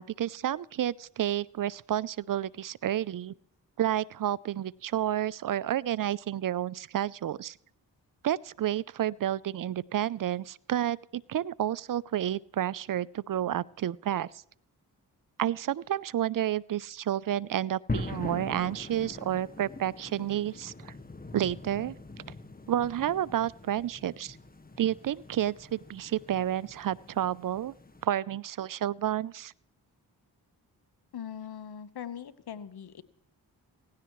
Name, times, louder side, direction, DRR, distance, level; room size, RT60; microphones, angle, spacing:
voice 1, 0.0-3.3 3.8-7.6 8.2-14.3 15.4-20.9 21.3-21.9 22.7-24.4 24.8-27.7 28.0-29.5, right 11 dB, 55° right, 23 dB, 0.5 m, -30 dB
sound 1, 17.9-28.1, left 2 dB, 20° left, 1.5 m, -42 dB
voice 2, 31.1-33.0, left 8 dB, 65° left, 14 dB, 1.2 m, -41 dB
17.0 x 16.0 x 3.1 m, 0.69 s
supercardioid pair, 40°, 41 cm